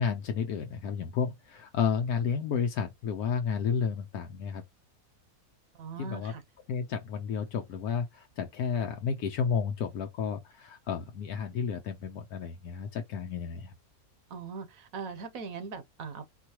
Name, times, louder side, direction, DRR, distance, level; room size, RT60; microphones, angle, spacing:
voice 1, 0.0-4.6 6.0-6.3 6.7-13.7, left 6 dB, 80° left, 1.2 m, -31 dB
voice 2, 5.7-6.4 14.3-16.3, right 5 dB, 70° right, 1.1 m, -40 dB
4.6 x 2.3 x 2.9 m
omnidirectional pair, 1.6 m